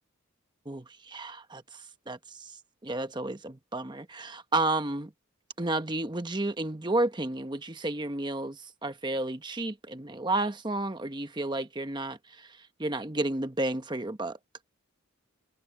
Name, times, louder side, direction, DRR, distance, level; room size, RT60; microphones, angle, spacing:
voice 1, 0.7-1.8 2.1-2.5 2.8-5.1 5.6-14.4, right 2 dB, 20° right, 1.0 m, -32 dB
head